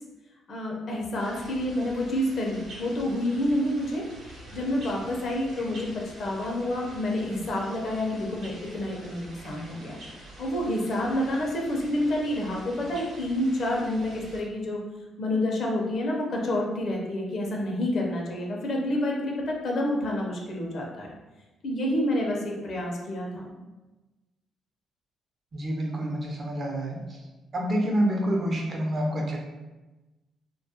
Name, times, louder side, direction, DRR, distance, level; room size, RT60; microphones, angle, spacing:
voice 1, 0.5-5.9 6.2-10.0 10.4-14.8 15.2-21.2 21.6-23.6, left 1 dB, 55° left, -1 dB, 0.5 m, -28 dB
sound 1, 1.2-14.4, right 1 dB, 75° right, 0.8 m, -46 dB
voice 2, 25.5-27.2 27.5-29.4, right 1 dB, 40° right, 0 dB, 0.5 m, -27 dB
2.2 x 2.1 x 2.7 m, 1.1 s
cardioid pair, 90°, 0 cm